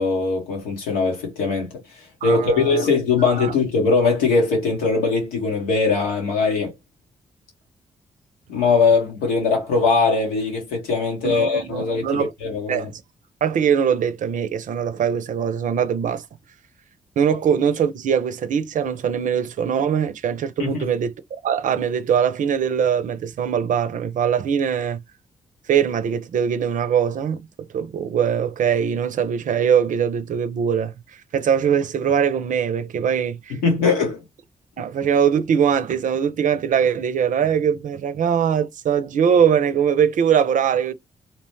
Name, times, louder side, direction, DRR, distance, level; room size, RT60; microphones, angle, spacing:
voice 1, 0.0-1.7 2.2-6.7 8.5-12.9 20.6-20.9 33.6-34.2, left 4 dB, 90° left, 1.1 m, -21 dB
voice 2, 2.2-2.8 3.4-3.5 11.2-12.3 12.7-13.0 13.4-16.2 17.2-21.1 21.4-25.0 25.7-27.5 27.7-30.9 31.3-33.6 34.8-40.9, right 8 dB, 60° right, 0.5 m, -21 dB
2.9 x 2.1 x 3.0 m
hypercardioid pair, 45°, 15 cm